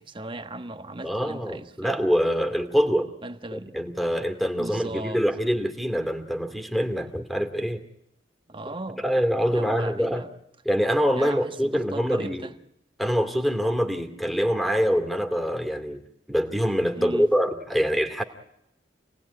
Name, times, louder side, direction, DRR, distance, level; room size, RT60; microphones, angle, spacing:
voice 1, 0.0-2.0 3.2-3.9 4.6-5.2 8.5-9.0 9.5-10.3 11.1-12.5 17.0-17.3, right 2 dB, 30° right, 1.3 m, -37 dB
voice 2, 1.0-3.1 3.5-7.8 9.0-10.2 10.6-12.5 13.0-18.2, equal, ahead, 2.4 m, -25 dB
28.0 x 19.0 x 9.7 m
head